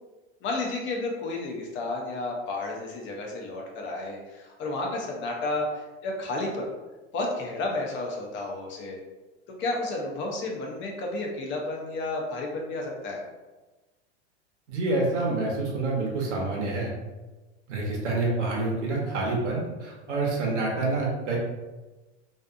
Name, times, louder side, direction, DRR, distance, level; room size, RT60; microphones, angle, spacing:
voice 1, 0.4-6.7 7.1-9.0 9.6-13.2, left 2 dB, 35° left, 0 dB, 0.6 m, -32 dB
voice 2, 14.7-16.9 17.7-21.4, right 2 dB, 85° right, -2 dB, 0.9 m, -27 dB
2.5 x 2.4 x 2.4 m, 1.2 s
hypercardioid pair, 110°, 35 cm